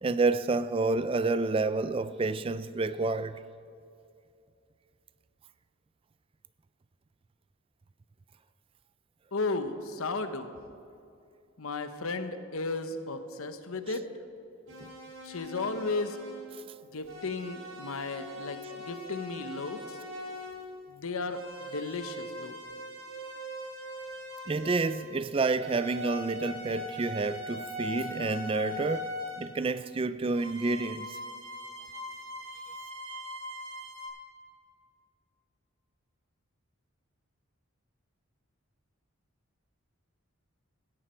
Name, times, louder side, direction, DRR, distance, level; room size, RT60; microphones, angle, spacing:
voice 1, 0.0-3.3 13.9-14.0 14.8-14.9 24.5-29.1 29.4-31.2, right 3 dB, 25° right, 0.3 m, -29 dB
voice 2, 9.3-10.5 11.6-14.1 15.2-16.2 16.9-20.0 20.9-22.5, left 3 dB, 80° left, 1.0 m, -34 dB
sound 1, 14.7-16.5 17.0-20.6 21.3-25.2 25.5-29.5 30.3-34.1, left 1 dB, 65° right, 3.7 m, -41 dB
17.0 x 14.0 x 4.5 m
head